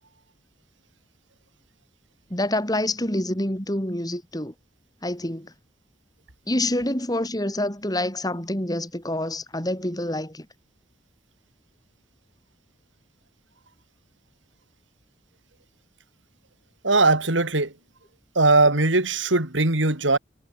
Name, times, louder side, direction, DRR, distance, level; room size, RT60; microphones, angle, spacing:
voice 1, 2.3-4.5 5.0-5.5 6.5-10.5, left 1 dB, 20° left, 5.4 m, -27 dB
voice 2, 16.8-17.7 18.4-20.2, right 3 dB, 85° right, 3.7 m, -20 dB
head